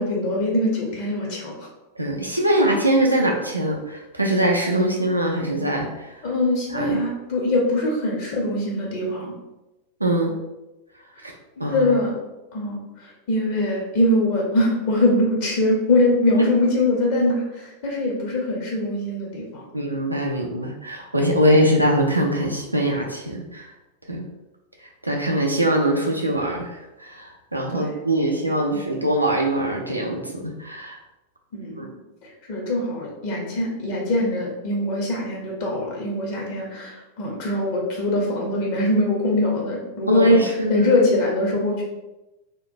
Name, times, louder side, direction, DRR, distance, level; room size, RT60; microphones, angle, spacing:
voice 1, 0.0-1.6 6.2-9.3 11.7-12.1 12.5-12.8 13.3-19.7 27.7-27.9 31.5-31.9 32.5-40.4 40.7-41.8, left 1 dB, 50° left, -2 dB, 0.6 m, -23 dB
voice 2, 2.0-6.1 6.7-7.0 10.0-10.3 11.2-11.3 11.6-11.9 19.7-23.7 24.1-24.2 25.0-31.0 31.8-31.9 40.1-40.9, right 1 dB, 85° right, 0 dB, 0.3 m, -22 dB
2.8 x 2.1 x 2.5 m, 1.0 s
figure-of-eight pair, 90°, 0 cm